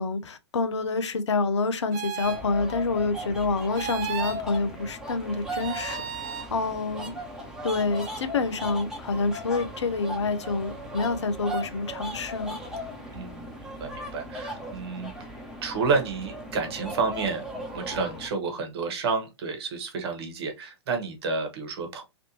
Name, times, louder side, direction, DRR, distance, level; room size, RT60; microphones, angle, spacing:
voice 1, 0.0-6.0 6.5-7.1 7.6-12.6, left 3 dB, 75° left, 0.6 m, -27 dB
sound 1, 1.9-2.4 3.8-4.4 5.6-6.5, right 8 dB, 40° right, 0.7 m, -34 dB
sound 2, 2.2-18.3, equal, 5° right, 1.1 m, -38 dB
voice 2, 13.1-13.5 13.8-15.1 15.6-17.4 17.7-22.0, right 4 dB, 60° right, 1.3 m, -30 dB
3.3 x 2.6 x 2.8 m
figure-of-eight pair, 110°, 15 cm